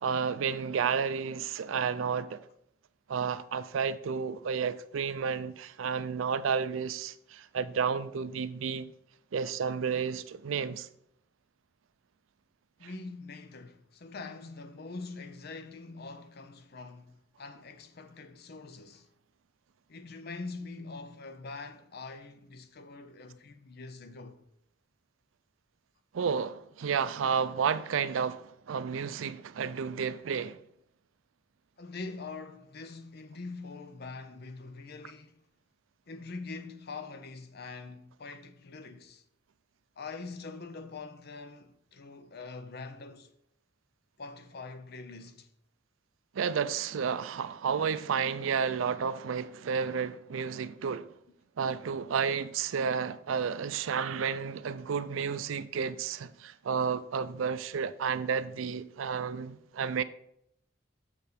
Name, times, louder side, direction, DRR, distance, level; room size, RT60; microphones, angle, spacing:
voice 1, 0.0-2.5 3.1-8.9 9.3-10.9 26.1-30.6 46.3-51.1 51.6-60.0, right 6 dB, 90° right, 0.4 m, -31 dB
voice 2, 12.8-19.1 19.9-24.4 31.8-35.4 36.1-39.2 40.0-43.3 44.2-45.5, left 3 dB, 55° left, 0.6 m, -44 dB
6.6 x 4.8 x 5.1 m
head